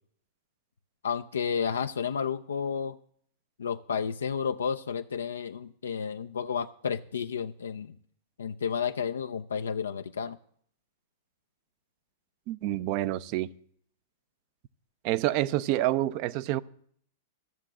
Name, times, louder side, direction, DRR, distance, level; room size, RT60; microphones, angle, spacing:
voice 1, 1.0-3.0 3.6-8.0 8.4-10.4, left 6 dB, 80° left, 8 dB, 0.4 m, -31 dB
voice 2, 12.5-13.5 15.0-16.6, right 15 dB, 50° right, 17 dB, 0.5 m, -28 dB
14.0 x 6.7 x 7.3 m, 0.62 s
hypercardioid pair, 105°, 0 cm